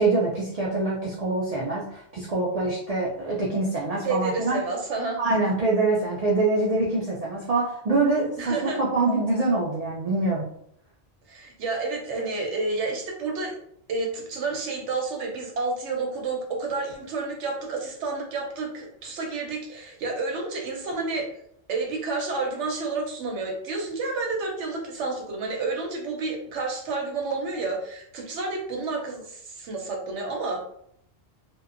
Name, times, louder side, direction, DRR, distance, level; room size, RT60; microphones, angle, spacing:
voice 1, 0.0-4.6 5.2-10.4, right 2 dB, 55° right, -5 dB, 0.4 m, -25 dB
voice 2, 4.0-5.2 8.4-8.8 11.3-13.5 13.9-21.3 21.7-30.6, right 3 dB, 80° right, 1 dB, 1.0 m, -30 dB
2.7 x 2.1 x 2.4 m, 0.70 s
omnidirectional pair, 1.2 m